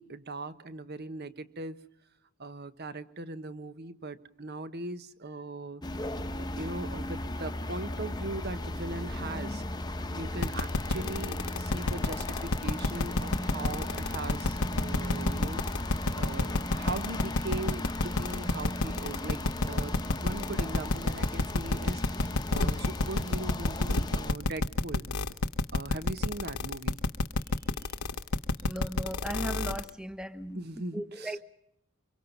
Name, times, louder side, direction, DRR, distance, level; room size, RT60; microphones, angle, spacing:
voice 1, 0.0-1.8 2.4-5.8 6.3-9.6 10.1-15.7 16.1-25.1 25.7-27.0 30.5-31.4, right 2 dB, 50° right, 13 dB, 1.2 m, -39 dB
sound 1, 5.8-24.3, left 1 dB, 20° left, 1.0 m, -36 dB
sound 2, 10.4-29.9, left 2 dB, 85° left, 1.0 m, -28 dB
voice 2, 28.6-30.6 30.9-31.4, right 1 dB, 5° right, 12 dB, 1.1 m, -37 dB
25.5 x 23.5 x 5.4 m, 0.77 s
head